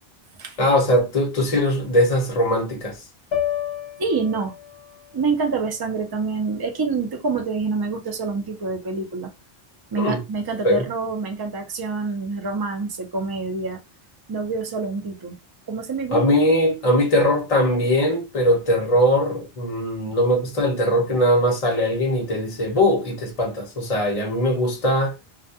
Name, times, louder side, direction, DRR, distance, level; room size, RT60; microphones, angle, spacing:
voice 1, 0.6-3.0 10.0-10.2 10.6-10.8 16.1-25.2, equal, 40° left, 0.8 m, -20 dB
sound 1, 3.3-7.6, left 10 dB, 85° left, 1.0 m, -33 dB
voice 2, 4.0-4.5 5.1-9.3 9.9-13.8 14.3-15.4 15.7-16.2 16.9-17.0, right 4 dB, 30° right, 0.4 m, -26 dB
2.2 x 2.2 x 2.6 m
omnidirectional pair, 1.0 m